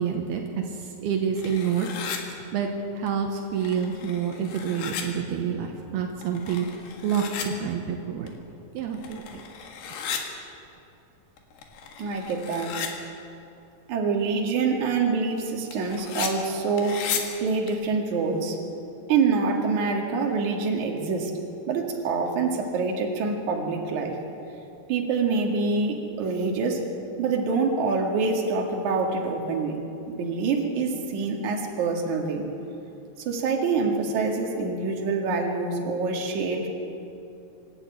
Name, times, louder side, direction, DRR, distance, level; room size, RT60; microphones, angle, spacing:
voice 1, 0.0-1.9 2.3-8.3 8.7-9.5, right 7 dB, 75° right, 3 dB, 3.1 m, -28 dB
sound 1, 1.4-2.2 3.1-3.2 3.5-5.0 6.2-7.5 8.3-8.4 8.8-10.2 11.4-12.9 15.7-16.3 16.8-17.2 17.7-17.8, left 8 dB, 80° left, 3.7 m, -35 dB
voice 2, 12.0-12.7 13.9-17.0 17.4-18.6 19.1-21.3 21.7-24.2 24.9-26.8 27.2-29.7 30.1-32.4 33.2-36.7, right 4 dB, 55° right, 1 dB, 3.1 m, -26 dB
25.5 x 11.5 x 8.9 m, 2.8 s
omnidirectional pair, 4.6 m